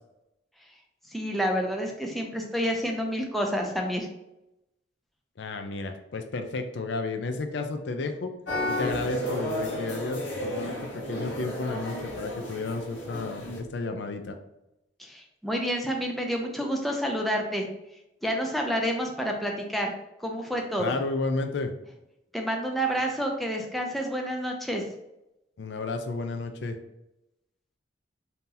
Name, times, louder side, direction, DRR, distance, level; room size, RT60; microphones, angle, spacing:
voice 1, 1.1-4.1 15.0-17.7 18.2-19.9 20.2-20.9 22.3-24.8, equal, ahead, 1 dB, 0.4 m, -29 dB
voice 2, 5.4-8.3 8.7-14.4 20.8-21.7 25.6-26.8, left 3 dB, 70° left, 6 dB, 0.4 m, -32 dB
sound 1, 8.5-13.6, left 1 dB, 85° left, 1.0 m, -33 dB
2.8 x 2.7 x 3.7 m, 0.90 s
head